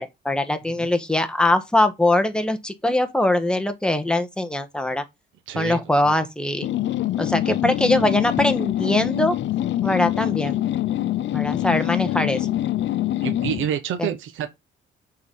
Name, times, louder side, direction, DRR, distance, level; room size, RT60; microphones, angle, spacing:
voice 1, 0.0-5.0 5.5-6.7 7.2-9.4 9.8-10.5 11.3-12.5 14.0-14.1, left 1 dB, 5° left, 1.5 m, -22 dB
voice 2, 5.5-5.8 6.0-6.2 13.2-14.5, right 9 dB, 80° right, 1.3 m, -28 dB
sound 1, 6.6-13.7, left 13 dB, 70° left, 0.7 m, -24 dB
6.6 x 4.3 x 5.5 m
cardioid pair, 90°, 20 cm